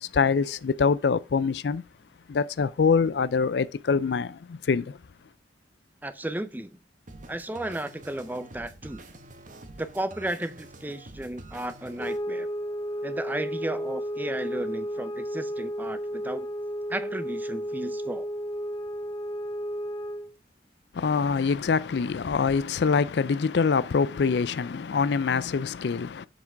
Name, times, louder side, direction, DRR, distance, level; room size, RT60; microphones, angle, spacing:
voice 1, 0.0-1.8 2.3-5.0 20.9-26.3, left 5 dB, 65° left, 0.4 m, -25 dB
voice 2, 6.0-6.8 7.3-9.0 9.8-12.5 13.0-16.5 16.9-18.3, right 1 dB, 10° right, 0.5 m, -34 dB
sound 1, 7.1-12.2, right 2 dB, 45° right, 1.1 m, -47 dB
sound 2, 12.0-20.3, equal, 20° left, 0.9 m, -33 dB
7.2 x 6.1 x 4.5 m
head